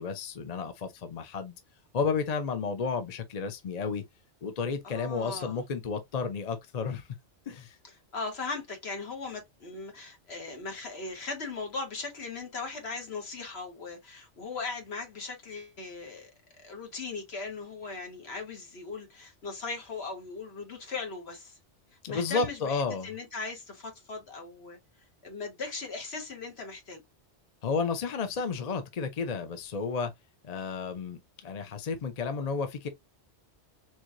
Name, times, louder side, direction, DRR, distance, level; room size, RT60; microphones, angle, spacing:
voice 1, 0.0-1.5 1.9-4.0 4.4-7.1 7.5-7.8 22.0-23.1 27.6-30.1 30.4-32.9, left 5 dB, 45° left, 0.6 m, -32 dB
voice 2, 4.8-5.6 7.8-16.3 16.6-21.6 22.1-24.8 25.2-27.0, left 4 dB, 60° left, 1.6 m, -38 dB
4.4 x 3.0 x 2.5 m
omnidirectional pair, 1.2 m